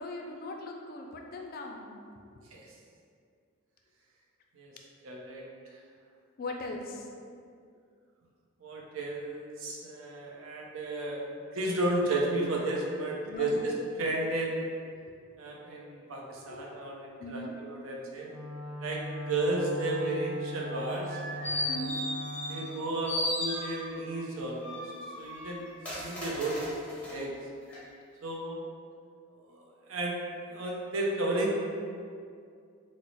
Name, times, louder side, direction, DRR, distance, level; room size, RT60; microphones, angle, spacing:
voice 1, 0.0-2.0 6.4-7.1 13.2-13.7 16.3-16.7 17.2-17.6 21.7-22.0, left 2 dB, 45° left, 2 dB, 0.3 m, -39 dB
voice 2, 5.0-5.4 5.7-5.8 8.6-11.2 11.5-13.7 14.0-14.7 15.4-18.3 18.8-21.7 22.5-24.9 25.2-25.7 26.0-26.8 27.1-27.3 28.2-28.6 29.5-29.6 29.9-30.2 30.5-31.5, right 2 dB, 85° right, -2 dB, 0.6 m, -33 dB
Wind instrument woodwind instrument, 18.2-22.7, equal, 25° right, 0.8 m, -39 dB
sound 1, 20.9-22.8 23.1-24.1 24.6-27.2 27.7-27.8, left 1 dB, 5° left, 0.6 m, -36 dB
3.0 x 2.0 x 3.9 m, 2.3 s
head